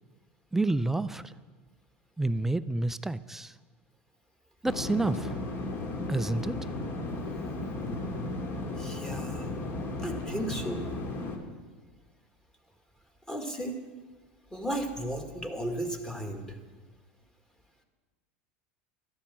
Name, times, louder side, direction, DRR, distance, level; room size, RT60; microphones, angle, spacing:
voice 1, 0.5-1.3 2.2-3.5 4.6-5.4 6.1-6.6, right 2 dB, 5° right, 13 dB, 0.4 m, -29 dB
sound 1, 4.6-11.4, left 2 dB, 40° left, 2.2 m, -35 dB
voice 2, 8.8-9.6 10.0-10.9 13.3-13.8 14.5-16.6, right 1 dB, 10° left, 4 dB, 1.8 m, -35 dB
12.5 x 10.0 x 7.4 m, 1.3 s
supercardioid pair, 135°, 6 cm